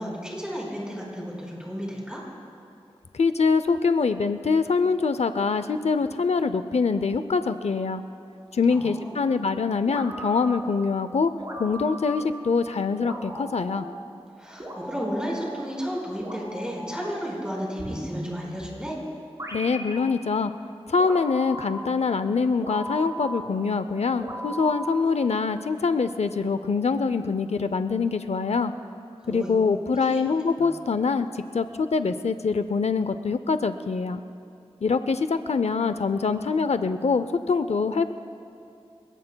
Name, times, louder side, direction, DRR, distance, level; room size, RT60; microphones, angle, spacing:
voice 1, 0.0-2.2 8.7-9.2 14.4-19.0 29.2-29.5 29.9-30.2 30.6-30.7, equal, 10° right, -3 dB, 4.6 m, -33 dB
voice 2, 3.1-8.0 8.5-11.3 11.6-13.9 19.5-20.5 20.9-28.7 29.3-34.2 34.8-38.1, left 4 dB, 90° left, 11 dB, 0.5 m, -24 dB
sound 1, 9.9-10.8 11.4-12.4 13.0-14.0 14.6-15.6 16.2-17.2 17.8-18.8 19.4-20.2 21.0-22.0 22.6-23.6 24.2-25.2, equal, 35° right, 3.4 m, -37 dB
29.0 x 17.5 x 2.3 m, 2.5 s
wide cardioid pair, 65°, 11 cm